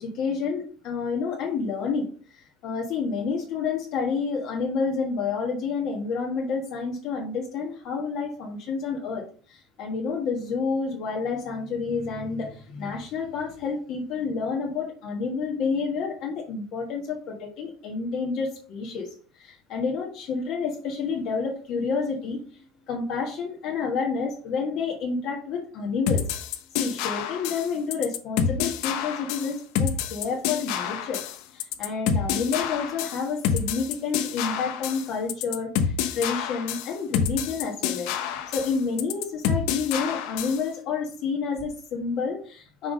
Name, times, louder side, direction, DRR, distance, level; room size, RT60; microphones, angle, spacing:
voice 1, 0.0-19.1 19.3-26.2 26.8-31.2 31.5-38.1 38.5-42.9, left 5 dB, 50° left, -1 dB, 1.4 m, -29 dB
sound 1, 26.1-40.7, left 8 dB, 70° left, 0.8 m, -28 dB
5.8 x 4.0 x 5.0 m, 0.42 s
cardioid pair, 160°, 0 cm